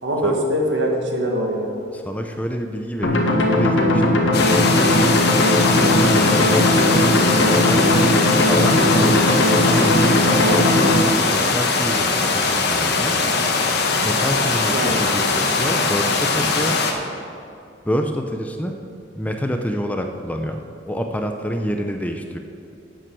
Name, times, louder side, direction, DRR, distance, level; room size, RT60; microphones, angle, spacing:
voice 1, 0.0-1.7 10.4-10.7 14.7-15.0, equal, 75° right, 0 dB, 1.8 m, -22 dB
voice 2, 1.9-4.7 5.7-7.9 8.5-10.3 11.3-13.3 14.0-16.8 17.8-18.8 19.1-22.4, equal, 10° left, 5 dB, 0.6 m, -27 dB
sound 1, 3.0-11.0, left 1 dB, 85° left, 1.5 m, -18 dB
sound 2, 4.3-16.9, left 3 dB, 60° left, 1.1 m, -21 dB
12.5 x 9.0 x 4.7 m, 2.6 s
head